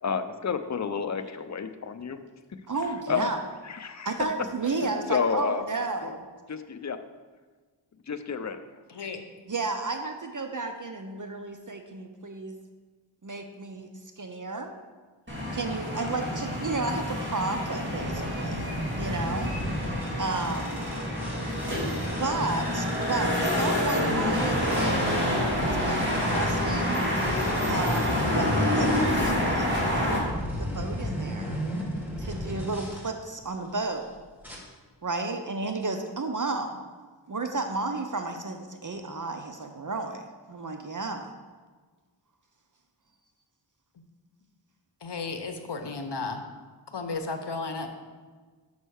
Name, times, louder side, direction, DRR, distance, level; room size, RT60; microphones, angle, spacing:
voice 1, 0.0-2.2 3.1-3.3 3.6-4.2 4.8-5.6 6.0-6.1 6.5-7.0 8.1-8.6, left 6 dB, 40° left, 9 dB, 0.5 m, -30 dB
voice 2, 2.7-3.4 4.0-6.2 9.5-12.6 13.2-13.9 14.2-14.7 15.5-19.6 20.2-20.9 22.2-25.1 25.4-27.0 27.7-30.3 30.6-31.6 32.2-34.1 35.0-36.8 37.3-40.2 40.5-41.3, right 3 dB, 45° right, 6 dB, 0.6 m, -32 dB
voice 3, 8.9-9.2 45.0-46.4 46.9-47.9, left 4 dB, 65° left, 6 dB, 0.9 m, -33 dB
sound 1, 15.3-30.2, left 1 dB, 25° right, 2.3 m, -27 dB
sound 2, 18.0-23.8 24.3-33.0 33.7-34.0 34.4-34.6, equal, 5° right, 1.7 m, -36 dB
5.5 x 5.5 x 6.4 m, 1.4 s
wide cardioid pair, 60°, 44 cm